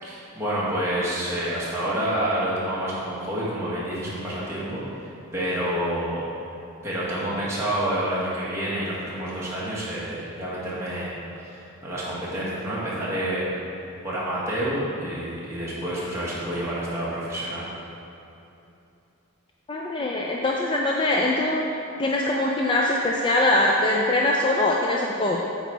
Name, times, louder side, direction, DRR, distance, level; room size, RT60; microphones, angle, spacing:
voice 1, 0.0-4.8 5.3-6.2 6.8-11.1 11.4-13.4 14.0-17.7, right 1 dB, 15° right, -9 dB, 1.5 m, -28 dB
voice 2, 19.7-21.7 22.0-25.5, left 1 dB, 25° left, -2 dB, 0.3 m, -22 dB
8.2 x 4.1 x 4.6 m, 2.9 s
head